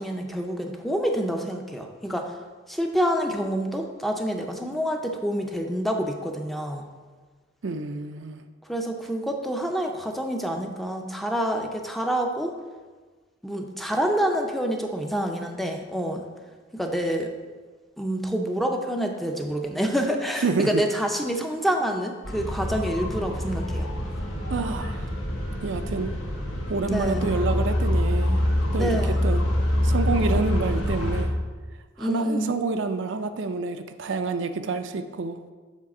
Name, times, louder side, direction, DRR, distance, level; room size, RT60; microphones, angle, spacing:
voice 1, 0.0-2.3 2.7-6.9 8.6-12.5 13.4-16.2 16.7-17.3 18.0-23.9 26.9-27.4 28.8-29.3 32.0-32.6, equal, ahead, 3 dB, 0.5 m, -27 dB
voice 2, 7.6-8.4 20.4-20.8 24.5-25.0 25.6-26.1 26.7-28.4 28.7-29.4 29.8-31.3 32.0-35.4, right 3 dB, 70° right, 8 dB, 0.4 m, -28 dB
sound 1, 22.2-31.2, left 1 dB, 90° left, 1.5 m, -26 dB
7.3 x 3.4 x 5.9 m, 1.4 s
head